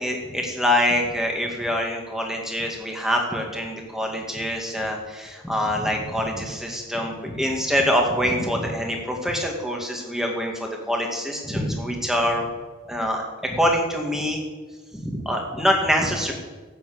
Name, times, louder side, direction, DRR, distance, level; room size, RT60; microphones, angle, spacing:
voice 1, 0.0-12.5 12.9-14.4 14.9-16.3, equal, ahead, 1 dB, 2.1 m, -25 dB
13.0 x 8.7 x 8.5 m, 1.3 s
head